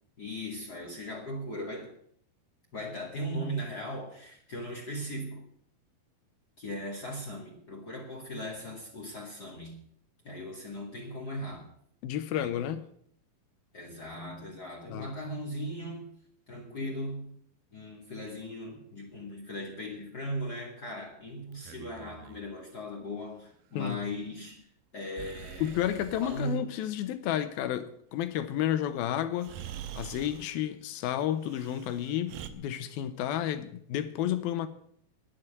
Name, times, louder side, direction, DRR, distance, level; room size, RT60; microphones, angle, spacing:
voice 1, 0.2-1.9 2.7-5.5 6.6-9.8 10.2-11.7 12.3-12.6 13.7-16.2 16.5-17.4 17.7-24.7 24.9-25.9 26.2-26.7, equal, 35° left, 2.1 m, -38 dB
voice 2, 12.0-12.8 14.9-15.1 23.8-24.0 25.6-29.6 29.9-34.7, left 11 dB, 80° left, 2.8 m, -31 dB
Breathing, 21.5-22.4 25.1-26.6 28.8-28.9 29.4-30.5 31.4-32.5, right 11 dB, 75° right, 2.7 m, -45 dB
11.0 x 9.6 x 9.2 m
omnidirectional pair, 4.3 m